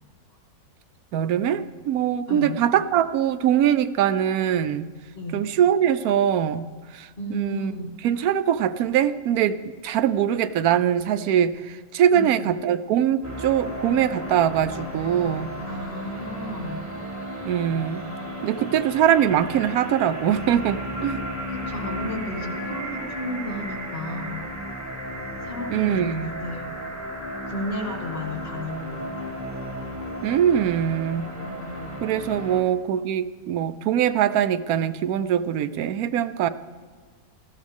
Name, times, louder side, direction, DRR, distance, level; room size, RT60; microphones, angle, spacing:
voice 1, 1.1-4.9 5.3-9.6 9.8-15.5 17.4-18.0 18.4-21.2 25.7-26.4 30.2-31.3 32.0-36.5, right 9 dB, 85° right, 13 dB, 1.1 m, -22 dB
voice 2, 2.3-2.6 5.1-5.5 7.2-7.9 12.1-12.5 15.6-16.9 21.5-24.5 25.4-26.8 27.5-29.3 31.4-32.0, left 1 dB, 40° left, -1 dB, 2.4 m, -33 dB
sound 1, 13.2-32.6, equal, 10° right, 1.8 m, -34 dB
20.0 x 14.0 x 3.5 m, 1.5 s
omnidirectional pair, 1.5 m